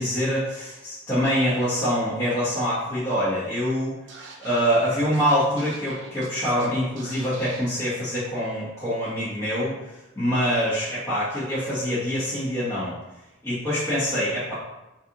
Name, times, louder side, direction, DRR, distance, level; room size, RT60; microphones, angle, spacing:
voice 1, 0.0-3.9 4.4-9.7 10.2-13.0 13.4-14.5, equal, 15° left, -13 dB, 1.0 m, -25 dB
Scratching (performance technique), 4.1-4.7 5.1-5.2 5.6-6.7 7.0-7.6, right 3 dB, 70° right, 0.6 m, -44 dB
4.0 x 2.8 x 2.5 m, 0.99 s
head